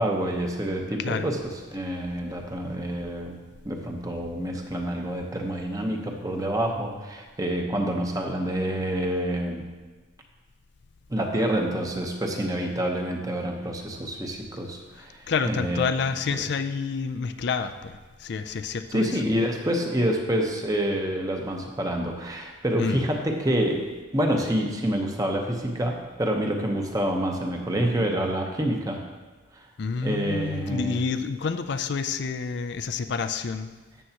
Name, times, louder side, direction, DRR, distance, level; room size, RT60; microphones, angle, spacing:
voice 1, 0.0-3.4 3.6-9.6 11.1-15.9 16.3-16.4 18.9-23.8 24.1-29.0 29.5-29.7 30.0-31.0, right 1 dB, 20° right, 2 dB, 0.9 m, -27 dB
voice 2, 1.0-1.3 15.3-19.2 22.8-23.0 29.8-33.7, left 5 dB, 60° left, 9 dB, 0.4 m, -29 dB
12.5 x 7.8 x 2.9 m, 1.3 s
head